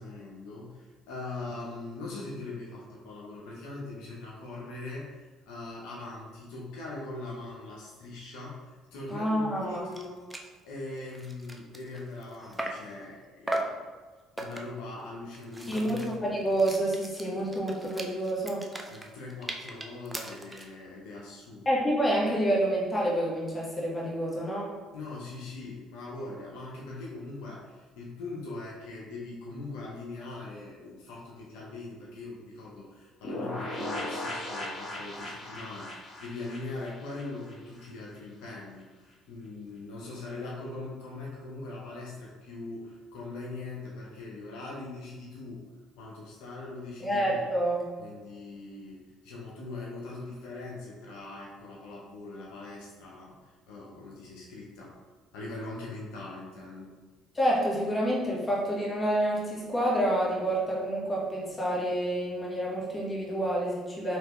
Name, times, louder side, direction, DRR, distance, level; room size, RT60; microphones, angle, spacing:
voice 1, 0.0-10.2 10.6-13.9 14.4-16.1 18.9-21.7 24.9-45.6 46.0-47.4 48.0-54.9 55.3-57.0, left 2 dB, 75° left, -4 dB, 0.8 m, -41 dB
voice 2, 9.1-9.8 15.7-18.6 21.6-24.8 47.0-47.8 57.3-64.2, right 1 dB, 20° left, -4 dB, 1.3 m, -28 dB
sound 1, 9.6-9.7 9.9-10.0 10.3-10.5 11.0-12.9 13.5-13.8 14.4-14.8 15.3-20.7, right 1 dB, 10° right, 0.5 m, -38 dB
sound 2, 33.2-37.9 38.1-38.2 38.5-38.6, left 1 dB, 40° left, 1.5 m, -37 dB
3.3 x 3.2 x 3.0 m, 1.4 s
hypercardioid pair, 65°, 0 cm